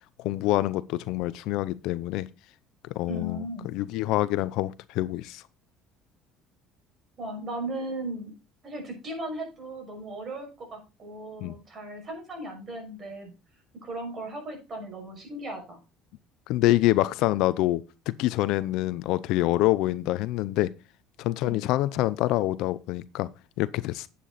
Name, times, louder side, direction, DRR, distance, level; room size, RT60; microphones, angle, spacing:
voice 1, 0.2-2.3 2.9-5.4 11.4-11.5 16.5-20.7 21.2-23.3 23.6-24.1, left 16 dB, 75° left, 0.7 m, -26 dB
voice 2, 3.1-3.7 7.2-8.3 8.6-13.3 13.8-15.8 21.4-21.6, right 1 dB, 40° right, 6.3 m, -37 dB
10.0 x 8.4 x 4.1 m
supercardioid pair, 100°, 0 cm